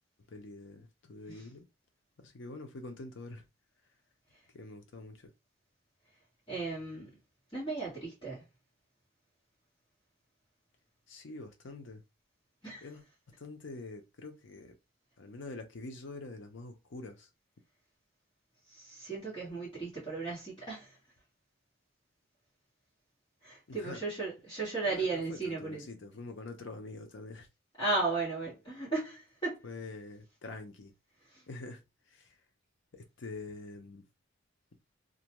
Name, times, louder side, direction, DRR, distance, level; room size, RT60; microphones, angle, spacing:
voice 1, 0.3-1.7 2.2-3.5 4.5-5.3 11.1-12.0 12.8-13.0 13.4-14.8 15.2-17.3 23.7-24.0 24.9-27.5 29.6-30.9 31.5-32.3 32.9-34.0, left 3 dB, 65° left, 0.6 m, -45 dB
voice 2, 6.5-7.2 7.5-8.4 12.6-12.8 18.7-21.0 23.4-25.8 27.8-29.6 31.3-31.4, right 3 dB, 20° left, 1.3 m, -35 dB
2.5 x 2.1 x 2.9 m
head